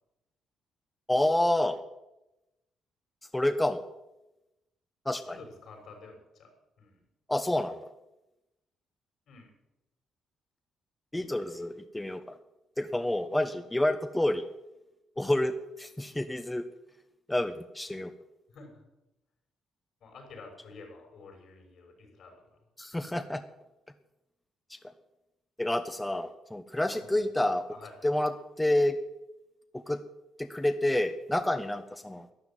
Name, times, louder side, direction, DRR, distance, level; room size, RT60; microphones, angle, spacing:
voice 1, 1.1-1.8 3.3-3.8 5.0-5.4 7.3-7.8 11.1-12.4 12.8-14.4 15.2-16.6 17.3-18.1 22.8-23.4 24.7-24.8 25.6-27.6 28.0-29.0 29.7-30.0 30.4-32.3, left 1 dB, 10° left, 8 dB, 1.0 m, -28 dB
voice 2, 5.2-7.0 9.3-9.5 18.5-18.8 20.0-22.6 23.0-23.1 26.9-27.3 27.7-28.1, left 3 dB, 65° left, 3 dB, 6.3 m, -50 dB
12.5 x 11.5 x 9.2 m, 0.95 s
cardioid pair, 90°, 0 cm